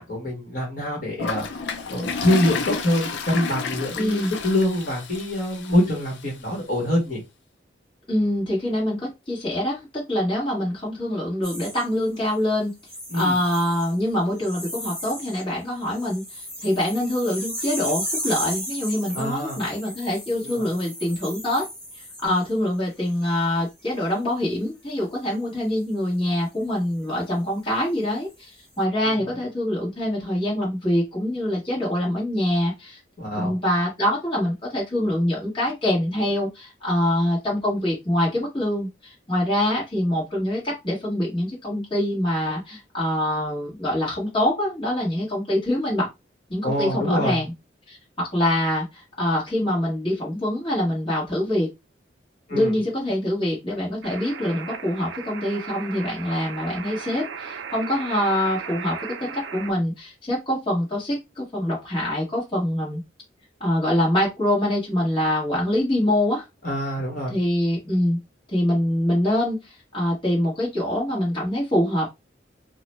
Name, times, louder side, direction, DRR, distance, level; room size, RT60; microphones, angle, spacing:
voice 1, 0.0-1.4 1.9-7.2 13.1-13.4 19.1-19.6 20.4-20.8 29.0-29.3 33.2-33.6 46.6-47.4 52.5-52.8 66.6-67.3, left 1 dB, 45° left, 1.4 m, -25 dB
Toilet flush, 1.2-6.2, left 5 dB, 70° left, 0.5 m, -31 dB
voice 2, 3.9-4.3 8.1-12.7 13.1-21.7 21.9-28.5 28.8-33.0 33.3-46.1 46.5-47.5 47.9-51.7 52.5-63.0 63.6-66.4 67.3-68.2 68.5-72.1, left 1 dB, 25° left, 1.4 m, -24 dB
sound 1, 11.4-12.3 12.8-14.0 14.4-15.4 15.7-22.5 23.0-23.3, equal, 5° left, 1.1 m, -35 dB
sound 2, 54.0-59.7, right 6 dB, 75° right, 0.4 m, -36 dB
2.9 x 2.1 x 3.0 m
head